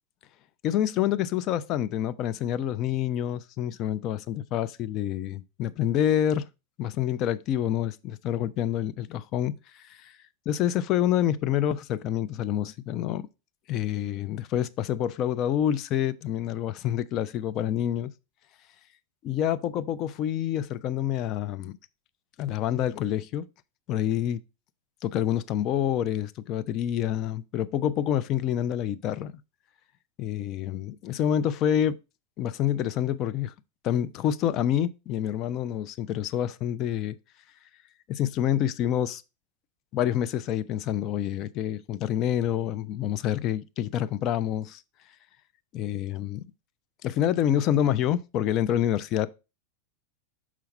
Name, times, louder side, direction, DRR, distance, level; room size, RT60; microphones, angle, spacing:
voice 1, 0.6-6.5 6.8-10.0 10.5-13.3 13.7-18.1 19.2-21.8 22.4-23.5 23.9-24.4 25.0-29.4 30.2-32.0 32.4-33.5 33.8-37.2 38.1-39.2 39.9-44.8 45.7-46.4 47.0-49.3, left 10 dB, 35° left, 0.5 m, -27 dB
6.1 x 5.7 x 4.2 m
figure-of-eight pair, 90°, 0 cm